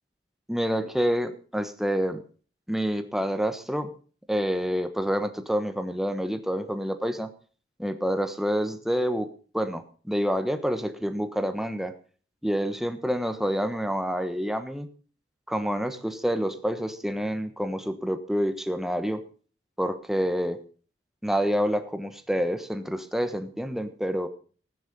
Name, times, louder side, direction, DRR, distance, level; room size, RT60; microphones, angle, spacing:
voice 1, 0.5-2.2 2.7-3.9 4.3-7.3 7.8-9.3 9.5-11.9 12.4-14.9 15.5-19.2 19.8-20.6 21.2-24.3, equal, ahead, 8 dB, 1.3 m, -28 dB
16.0 x 9.7 x 5.3 m, 0.40 s
head